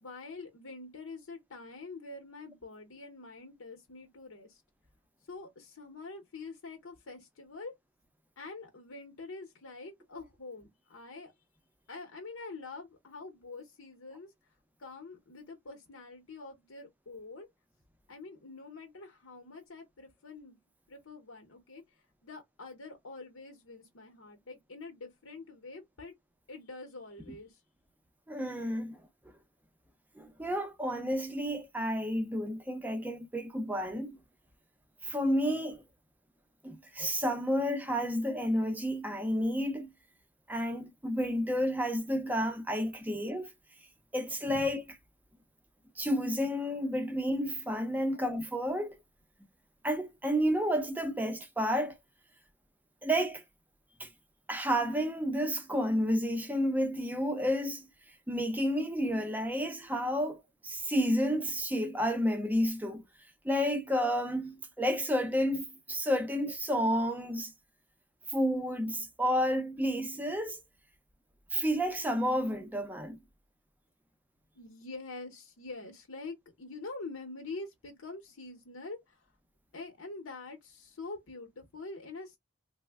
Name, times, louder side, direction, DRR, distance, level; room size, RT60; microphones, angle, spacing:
voice 1, 0.0-4.6 5.2-7.7 8.4-11.3 11.9-14.3 14.8-17.5 18.1-20.6 20.9-21.8 22.2-26.1 26.5-27.6 43.1-43.2 48.1-48.5 74.5-79.3 79.7-82.4, left 3 dB, 85° left, 0.8 m, -45 dB
voice 2, 28.3-29.0 30.2-34.2 35.0-35.8 36.6-39.9 40.5-43.5 44.1-45.0 46.0-49.0 49.8-52.0 53.0-53.4 54.0-54.1 54.5-57.9 58.3-63.0 63.4-67.5 68.3-70.6 71.5-73.2, equal, 10° right, 0.5 m, -31 dB
3.1 x 2.1 x 3.4 m
head